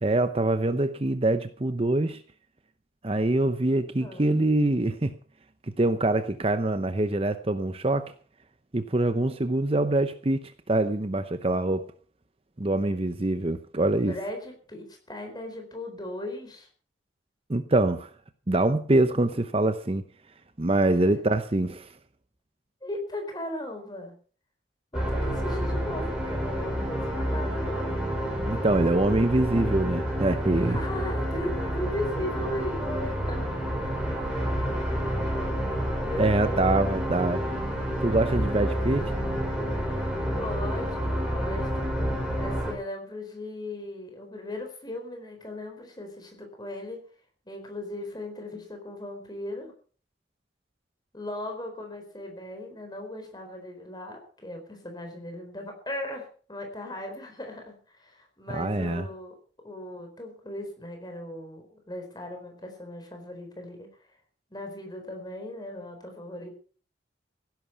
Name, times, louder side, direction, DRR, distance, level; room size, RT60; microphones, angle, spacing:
voice 1, 0.0-2.2 3.0-5.2 5.8-8.1 8.7-11.9 12.6-14.1 17.5-18.1 18.5-20.0 20.6-21.9 28.5-30.8 36.2-37.4 38.0-39.1 58.5-59.1, right 2 dB, 30° right, 0.7 m, -24 dB
voice 2, 4.0-4.3 13.8-16.7 20.9-21.1 22.8-24.1 24.9-28.0 30.5-33.6 36.0-36.9 40.3-41.9 42.4-47.1 47.5-49.7 51.1-63.9 64.5-66.5, left 1 dB, 20° left, 4.2 m, -37 dB
sound 1, 24.9-42.7, equal, 5° right, 4.5 m, -29 dB
16.5 x 11.0 x 5.8 m
head